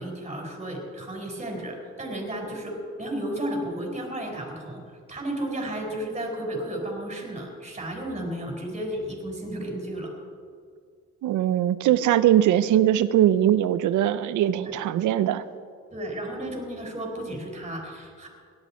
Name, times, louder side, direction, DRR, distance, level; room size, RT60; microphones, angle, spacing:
voice 1, 0.0-10.1 14.5-14.7 15.9-18.3, right 1 dB, 20° right, 0 dB, 4.6 m, -33 dB
voice 2, 11.2-15.4, right 11 dB, 80° right, 14 dB, 0.7 m, -21 dB
18.0 x 11.5 x 4.4 m, 2.2 s
cardioid pair, 90°, 30 cm